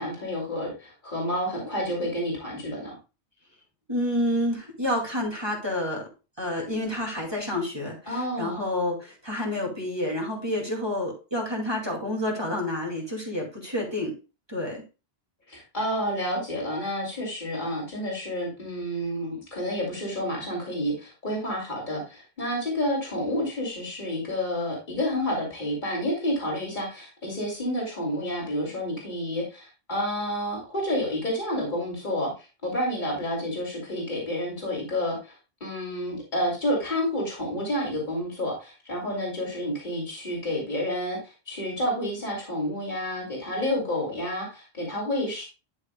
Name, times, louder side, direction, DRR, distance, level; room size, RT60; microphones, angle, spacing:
voice 1, 0.0-3.0 8.1-8.7 15.5-35.3 35.6-45.4, equal, 45° left, -3 dB, 3.1 m, -29 dB
voice 2, 3.9-6.1 6.4-14.1 14.5-14.8, left 1 dB, 25° right, -1 dB, 2.4 m, -29 dB
11.0 x 6.5 x 2.3 m, 0.30 s
omnidirectional pair, 1.1 m